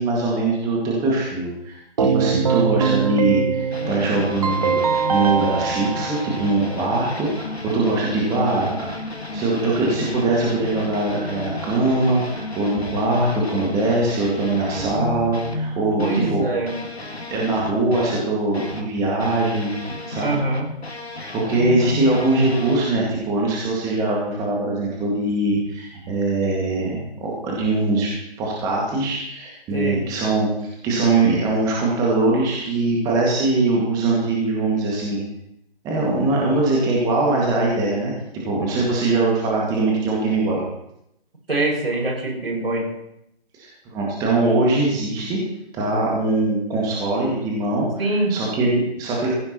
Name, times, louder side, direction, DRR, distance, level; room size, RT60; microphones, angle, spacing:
voice 1, 0.0-4.8 5.1-8.8 9.0-16.4 17.3-20.3 21.3-28.1 28.4-35.2 35.8-38.1 38.4-40.6 43.5-45.4 45.7-49.3, right 2 dB, 10° right, -3 dB, 2.0 m, -22 dB
Keyboard (musical), 2.0-6.9, right 6 dB, 35° right, 0.7 m, -23 dB
sound 1, 3.7-18.9 19.2-22.8, left 2 dB, 80° left, 1.9 m, -33 dB
voice 2, 16.0-16.7 20.2-20.7 29.7-30.1 41.5-42.9 48.0-48.4, right 2 dB, 65° right, 0 dB, 6.3 m, -23 dB
16.0 x 16.0 x 3.0 m, 0.80 s
figure-of-eight pair, 140°, 32 cm